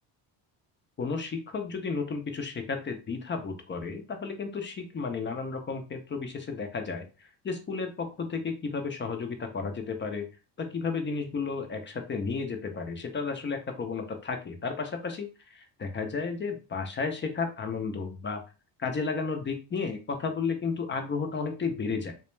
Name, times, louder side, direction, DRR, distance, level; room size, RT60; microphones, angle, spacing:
voice 1, 1.0-10.3 10.6-18.4 18.8-22.1, left 4 dB, 25° left, 6 dB, 0.5 m, -33 dB
2.3 x 2.2 x 3.0 m, 0.32 s
cardioid pair, 90°, 48 cm